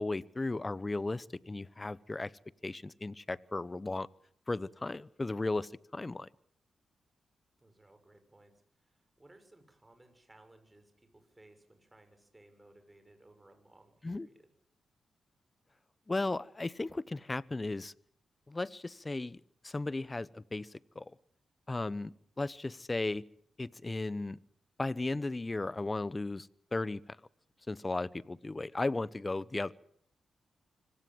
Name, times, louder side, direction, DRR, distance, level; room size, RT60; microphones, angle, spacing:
voice 1, 0.0-2.3 2.6-4.1 4.5-6.3 14.0-14.3 16.1-17.9 18.5-21.0 21.7-23.2 23.6-24.4 24.8-27.0 27.7-29.7, left 2 dB, 30° left, 20 dB, 0.9 m, -35 dB
voice 2, 7.6-8.5 8.8-14.5, right 2 dB, 20° right, 7 dB, 6.6 m, -61 dB
25.0 x 17.5 x 7.7 m, 0.67 s
cardioid pair, 55°, 0 cm